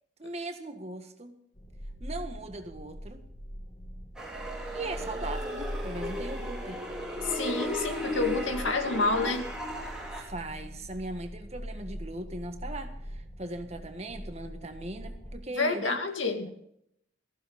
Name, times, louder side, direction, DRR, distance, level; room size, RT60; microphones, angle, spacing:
voice 1, 0.2-1.3 2.0-3.2 4.7-6.9 10.1-16.0, right 2 dB, 35° right, 6 dB, 1.6 m, -39 dB
sound 1, 1.5-15.4, equal, 40° left, 2.7 m, -42 dB
sound 2, 4.2-10.2, equal, 5° right, 4.0 m, -36 dB
voice 2, 7.2-9.5 15.6-16.5, left 3 dB, 85° left, 5 dB, 2.2 m, -28 dB
18.0 x 15.0 x 4.2 m, 0.73 s
head